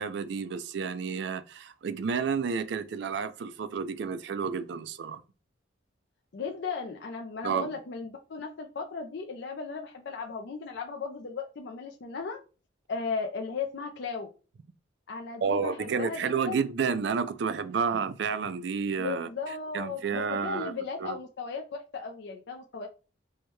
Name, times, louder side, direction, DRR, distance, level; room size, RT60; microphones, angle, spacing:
voice 1, 0.0-5.2 7.4-7.7 15.4-19.3 19.7-20.7 21.0-21.2, right 6 dB, 60° right, 0.3 m, -30 dB
voice 2, 6.3-12.4 12.9-14.3 15.1-16.6 19.0-22.9, left 5 dB, 60° left, 0.4 m, -36 dB
4.4 x 2.2 x 3.0 m
head